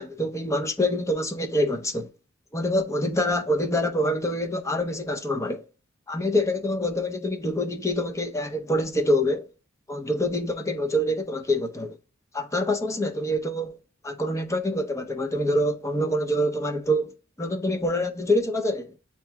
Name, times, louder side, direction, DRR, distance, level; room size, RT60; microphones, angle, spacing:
voice 1, 0.0-2.1 2.5-5.6 6.1-9.5 9.9-12.0 12.3-13.8 14.0-17.1 17.4-18.9, left 1 dB, 15° left, 0.6 m, -26 dB
8.3 x 2.9 x 2.2 m
head